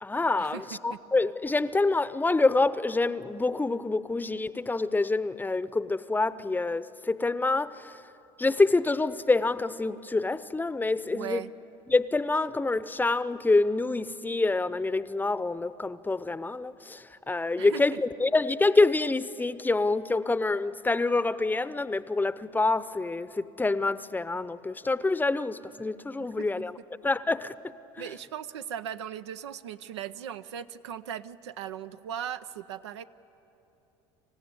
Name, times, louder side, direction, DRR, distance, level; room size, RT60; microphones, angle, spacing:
voice 1, 0.0-7.9 8.4-11.4 11.9-26.8 27.0-27.5 28.0-28.1, left 3 dB, 15° left, 15 dB, 0.7 m, -26 dB
voice 2, 11.1-11.5 17.6-18.0 26.2-26.5 28.0-33.0, right 9 dB, 90° right, 11 dB, 0.6 m, -38 dB
26.0 x 15.5 x 9.7 m, 3.0 s
hypercardioid pair, 80°, 14 cm